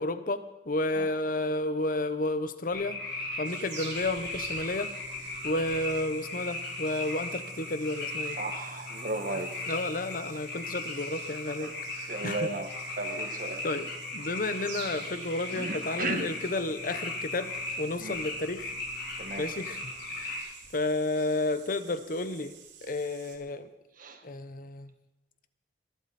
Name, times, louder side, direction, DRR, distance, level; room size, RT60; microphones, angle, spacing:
voice 1, 0.0-3.0 3.4-4.9 5.4-8.4 9.7-12.5 13.6-18.7 19.4-20.4 20.7-22.5 22.8-23.7 24.2-24.9, left 2 dB, 50° left, 12 dB, 0.9 m, -32 dB
sound 1, 2.7-20.4, left 2 dB, 65° left, 5.7 m, -37 dB
sound 2, 3.4-23.4, right 6 dB, 80° right, 3.0 m, -49 dB
voice 2, 8.4-9.5 11.6-11.7 12.1-12.7 13.0-13.7 15.5-16.3 18.0-18.2 19.2-19.5 24.0-24.2, right 2 dB, 50° right, 6 dB, 1.6 m, -34 dB
22.5 x 12.0 x 4.3 m, 1.0 s
head